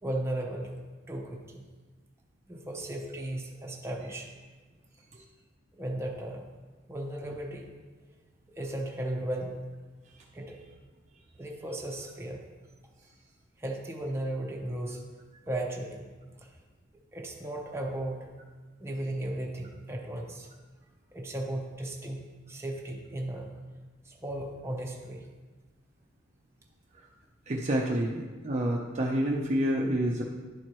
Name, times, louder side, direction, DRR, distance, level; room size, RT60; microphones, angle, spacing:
voice 1, 0.0-0.8 1.1-1.7 2.5-4.3 5.7-6.4 6.9-7.7 8.6-9.6 10.3-10.5 11.4-12.4 13.6-15.0 15.5-16.0 17.1-18.3 18.8-20.5 21.1-23.5 24.0-25.3, right 1 dB, 15° right, -1 dB, 0.9 m, -35 dB
voice 2, 27.5-30.2, right 1 dB, 35° right, -1 dB, 0.6 m, -28 dB
11.0 x 4.4 x 3.1 m, 1.3 s
head